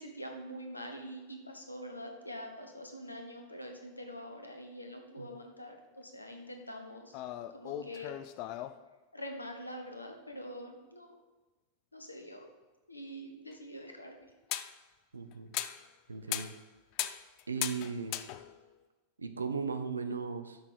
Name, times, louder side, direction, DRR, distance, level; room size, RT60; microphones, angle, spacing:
voice 1, 0.0-7.2 7.5-8.1 8.4-8.5 9.1-11.1 11.9-12.5 12.9-14.3, equal, 85° left, 3 dB, 1.2 m, -45 dB
sound 1, 7.1-8.8 13.5-13.6 14.5-14.8 15.3-15.9 16.3-16.6 16.9-18.7, left 13 dB, 45° left, 0.4 m, -38 dB
voice 2, 15.1-15.5 16.1-16.5 17.5-18.2 19.2-20.6, right 5 dB, 75° right, 9 dB, 0.7 m, -37 dB
8.0 x 6.0 x 5.0 m, 1.2 s
figure-of-eight pair, 90°, 0 cm